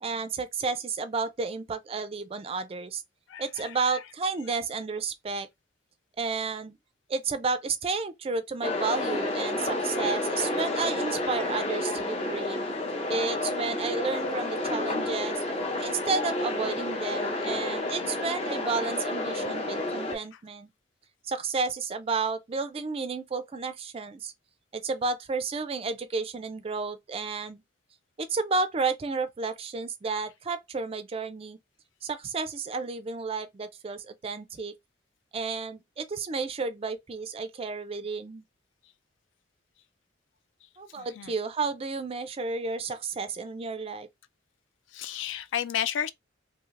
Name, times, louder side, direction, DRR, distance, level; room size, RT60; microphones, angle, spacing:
voice 1, 0.0-3.0 3.4-5.5 6.2-6.8 7.1-12.7 13.1-15.4 15.8-20.7 21.2-24.3 24.7-27.6 28.2-31.6 32.0-34.7 35.3-38.4 40.8-44.1, right 4 dB, 30° right, 0.4 m, -32 dB
voice 2, 3.3-4.0 4.5-4.6 41.0-41.3 44.9-46.1, left 9 dB, 70° left, 0.3 m, -33 dB
sound 1, 8.6-20.1, left 2 dB, 30° left, 0.6 m, -30 dB
3.1 x 2.7 x 2.4 m
head